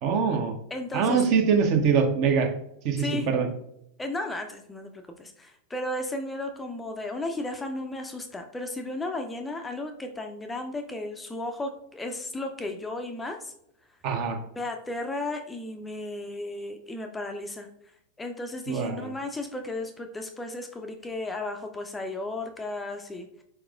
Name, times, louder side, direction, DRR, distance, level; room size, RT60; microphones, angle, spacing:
voice 1, 0.0-0.5 0.9-2.5 2.8-3.5 14.0-14.4 18.7-19.1, right 6 dB, 45° right, 5 dB, 0.8 m, -23 dB
voice 2, 0.7-1.2 3.0-3.3 4.0-13.5 14.6-17.7 18.2-23.4, left 2 dB, 10° left, 5 dB, 0.4 m, -34 dB
4.6 x 4.2 x 2.4 m, 0.75 s
figure-of-eight pair, 90°, 0 cm